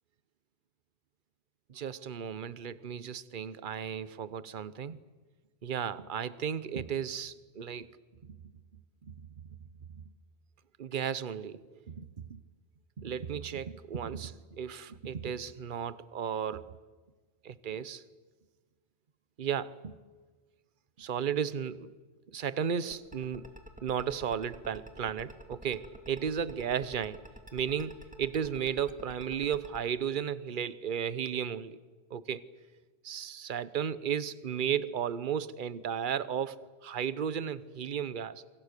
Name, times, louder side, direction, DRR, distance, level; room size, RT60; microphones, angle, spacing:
voice 1, 1.7-5.0 5.6-7.9 8.2-8.4 9.0-9.1 9.9-10.0 10.8-12.4 13.0-16.8 17.4-18.0 19.4-19.9 21.0-21.9 22.3-23.5 23.8-27.2 27.5-31.8 32.1-32.5 33.0-38.4, right 8 dB, 50° right, 1.0 m, -34 dB
sound 1, 22.9-29.8, right 1 dB, 5° right, 2.3 m, -48 dB
28.5 x 25.5 x 6.7 m
omnidirectional pair, 1.1 m